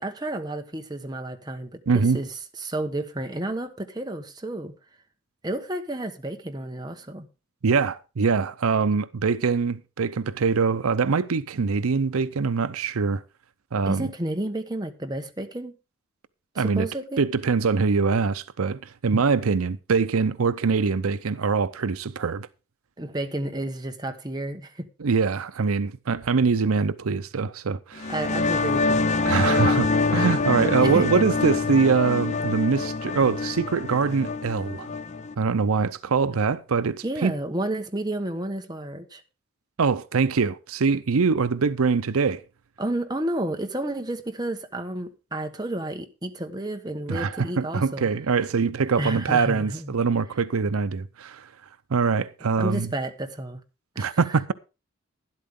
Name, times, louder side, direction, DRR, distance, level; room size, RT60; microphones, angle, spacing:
voice 1, 0.0-4.7 5.4-7.3 13.9-15.7 16.5-17.2 23.0-24.9 28.1-29.0 29.5-29.9 30.8-31.2 37.0-39.2 42.8-48.1 49.0-49.9 52.6-53.6 53.9-54.4, right 1 dB, 20° right, 1.2 m, -31 dB
voice 2, 1.9-2.2 7.6-13.2 13.7-14.1 16.6-16.9 17.2-22.5 25.0-28.1 29.2-34.9 35.4-37.3 39.8-42.4 47.1-51.5 51.9-52.9 54.0-54.5, right 5 dB, 90° right, 0.6 m, -23 dB
sound 1, 28.0-35.3, left 3 dB, 35° left, 0.6 m, -25 dB
12.5 x 11.5 x 3.6 m
head